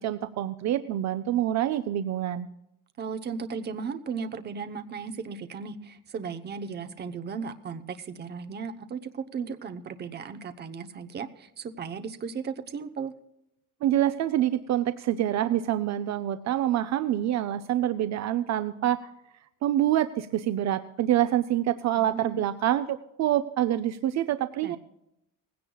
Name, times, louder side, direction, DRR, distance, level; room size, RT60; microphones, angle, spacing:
voice 1, 0.0-2.5 13.8-19.0 19.6-24.8, right 12 dB, 55° right, 10 dB, 0.6 m, -26 dB
voice 2, 3.0-13.1 22.0-22.5 24.6-24.8, right 5 dB, 30° right, 8 dB, 0.8 m, -36 dB
19.5 x 16.5 x 2.3 m, 0.83 s
cardioid pair, 180°, 33 cm